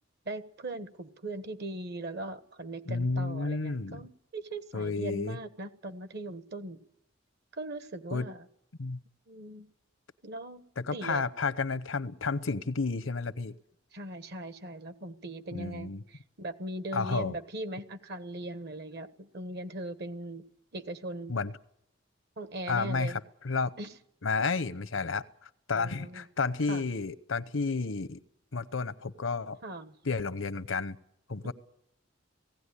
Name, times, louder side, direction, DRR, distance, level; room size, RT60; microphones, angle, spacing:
voice 1, 0.2-6.8 7.5-8.4 9.3-9.7 10.2-10.6 10.9-11.2 13.9-20.5 20.7-21.3 22.4-23.2 23.8-23.9 25.7-26.2 26.7-26.8 29.6-29.9 31.4-31.5, right 1 dB, 55° right, 11 dB, 1.3 m, -39 dB
voice 2, 2.9-4.0 4.7-5.4 8.1-8.3 8.8-9.0 10.8-13.5 15.5-16.0 16.9-17.4 21.3-21.5 22.7-23.7 24.2-28.2 28.5-29.6 30.0-31.0 31.3-31.5, left 4 dB, 80° left, 14 dB, 0.8 m, -31 dB
18.0 x 16.0 x 9.9 m, 0.79 s
head